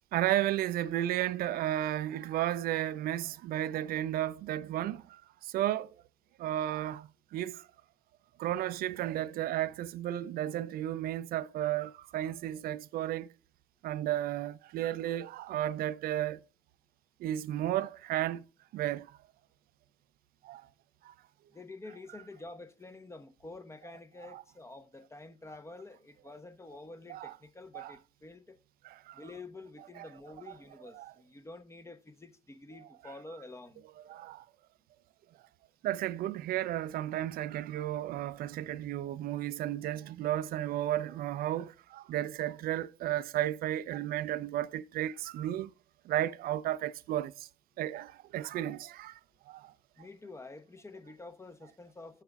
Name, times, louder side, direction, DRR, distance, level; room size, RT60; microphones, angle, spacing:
voice 1, 0.1-6.0 6.4-7.7 8.4-13.3 13.8-16.4 17.2-18.4 18.7-19.2 20.4-20.7 21.0-21.1 24.3-24.4 27.1-27.3 27.7-28.0 28.8-29.2 30.9-31.1 33.0-33.1 34.1-34.4 35.8-45.7 46.0-47.5 47.8-49.2 49.5-49.7, right 13 dB, 55° right, 0.4 m, -33 dB
voice 2, 21.5-28.6 29.1-33.8 50.0-52.2, left 2 dB, 15° left, 0.8 m, -48 dB
16.0 x 5.7 x 2.3 m
hypercardioid pair, 65°, 18 cm